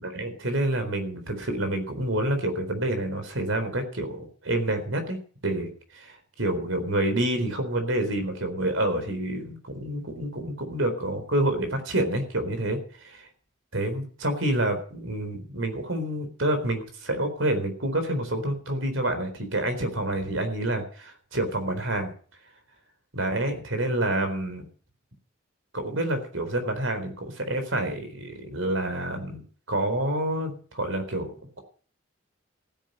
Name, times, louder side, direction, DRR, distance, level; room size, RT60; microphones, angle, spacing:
voice 1, 0.0-5.2 5.4-12.8 13.7-22.1 23.1-24.6 25.7-31.6, right 1 dB, 85° right, 7 dB, 4.1 m, -28 dB
15.5 x 10.0 x 6.5 m, 0.44 s
head